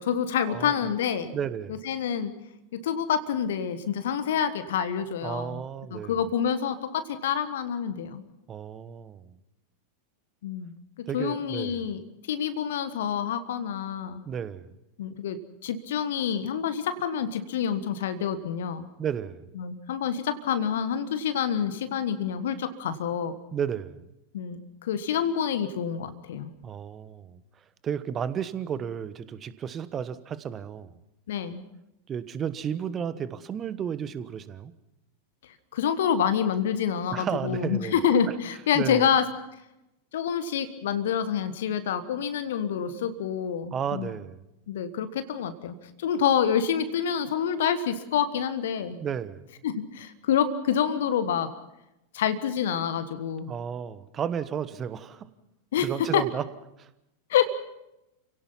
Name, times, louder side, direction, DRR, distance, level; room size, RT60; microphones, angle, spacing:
voice 1, 0.0-1.3 1.8-2.3 2.7-5.6 5.9-8.2 10.4-12.0 12.3-14.2 15.0-18.9 19.6-23.4 24.3-26.5 31.3-31.6 35.7-39.3 40.1-44.1 44.7-49.0 49.6-51.5 52.1-53.5 55.7-56.2 57.3-57.5, left 8 dB, 60° left, 11 dB, 1.4 m, -27 dB
voice 2, 1.3-1.8 5.2-6.2 8.5-9.4 11.1-11.8 14.2-14.7 19.0-19.4 23.5-24.0 26.6-27.4 27.8-30.9 32.1-34.7 37.1-38.0 38.7-39.1 43.7-44.4 49.0-49.4 53.5-55.3 55.8-56.4 56.8-56.9, right 8 dB, 25° right, 14 dB, 1.2 m, -33 dB
29.5 x 17.5 x 5.7 m, 0.89 s
figure-of-eight pair, 90°, 0 cm